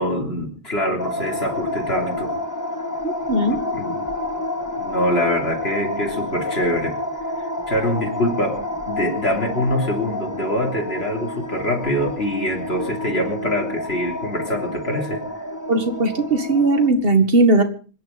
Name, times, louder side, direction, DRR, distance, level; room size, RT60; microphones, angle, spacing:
voice 1, 0.0-2.3 3.7-4.0 4.8-7.0 7.4-8.6 8.9-15.2, left 1 dB, 75° left, 1 dB, 3.7 m, -24 dB
sound 1, 1.0-16.9, left 1 dB, 15° left, 1.9 m, -29 dB
voice 2, 3.0-3.6 15.7-17.6, right 2 dB, 60° right, 9 dB, 2.1 m, -18 dB
25.5 x 10.5 x 5.2 m, 0.39 s
omnidirectional pair, 1.1 m